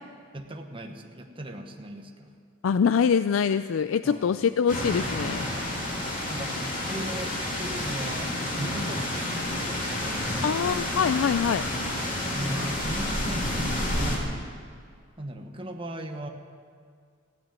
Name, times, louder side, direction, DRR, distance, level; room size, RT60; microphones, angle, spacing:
voice 1, 0.3-2.3 4.0-4.5 6.3-9.6 10.0-10.8 12.2-14.3 15.2-16.3, right 1 dB, 25° right, 3 dB, 1.1 m, -38 dB
voice 2, 2.6-5.5 10.4-11.7, left 6 dB, 70° left, 13 dB, 0.3 m, -24 dB
sound 1, 4.7-14.2, left 1 dB, 40° left, 3.0 m, -30 dB
15.5 x 9.7 x 9.0 m, 2.1 s
head